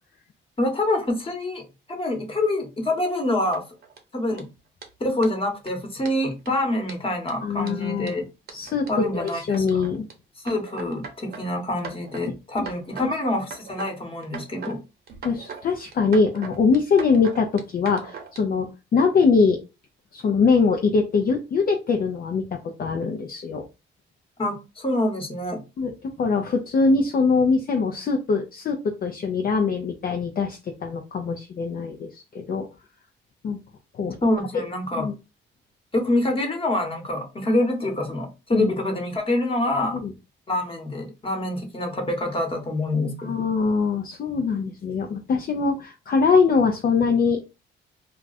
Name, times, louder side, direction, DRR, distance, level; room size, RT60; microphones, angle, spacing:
voice 1, 0.6-1.6 1.9-3.6 4.1-4.5 5.0-8.2 8.9-9.8 10.4-14.8 24.4-25.6 34.2-35.1 35.9-40.0 40.5-43.5, left 1 dB, 25° left, 3 dB, 1.2 m, -26 dB
sound 1, 3.5-4.0 4.3-4.4 4.8-4.9 5.2-5.3 5.7-5.8 6.0-6.5 6.9-10.1 10.5-11.4 11.8-12.3 12.6-13.1 13.4-13.9 14.2-14.8 15.1-15.6 15.9-18.4, right 5 dB, 55° right, 0.9 m, -39 dB
voice 2, 7.4-8.1 8.5-10.1 15.2-19.6 20.1-23.6 25.8-25.9 26.2-32.7 33.4-33.6 34.0-34.2 35.0-35.1 38.5-38.7 39.9-40.1 43.2-47.4, left 4 dB, 45° left, 2 dB, 0.5 m, -22 dB
2.3 x 2.3 x 3.9 m, 0.28 s
cardioid pair, 90°, 20 cm